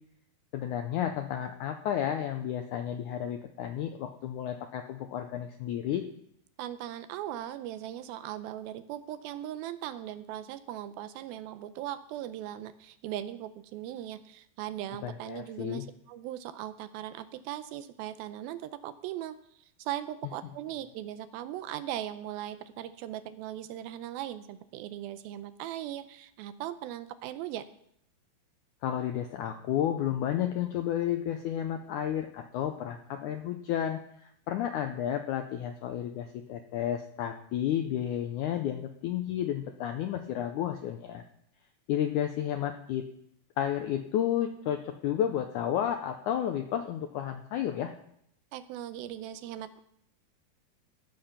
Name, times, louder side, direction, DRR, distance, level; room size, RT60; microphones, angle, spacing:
voice 1, 0.5-6.0 15.0-15.8 28.8-41.2 41.9-43.0 43.6-47.9, left 10 dB, 90° left, 6 dB, 1.7 m, -32 dB
voice 2, 6.6-27.7 48.5-49.8, right 12 dB, 80° right, 12 dB, 2.4 m, -39 dB
15.5 x 6.8 x 5.7 m, 0.70 s
omnidirectional pair, 4.4 m